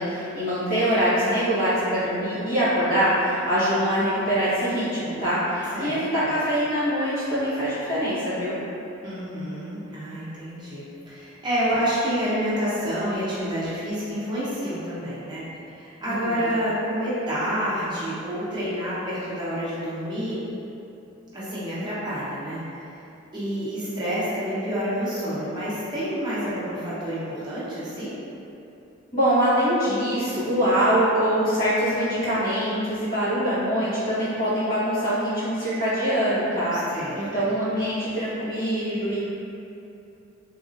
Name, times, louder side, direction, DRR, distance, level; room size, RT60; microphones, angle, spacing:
voice 1, 0.0-8.6 16.0-16.4 29.1-36.8 37.1-39.2, equal, 45° left, -13 dB, 1.2 m, -24 dB
voice 2, 5.7-6.3 9.0-15.4 15.8-20.4 21.3-22.6 23.3-28.1 36.9-37.5, equal, 20° right, -10 dB, 0.7 m, -28 dB
3.0 x 2.7 x 2.6 m, 2.8 s
head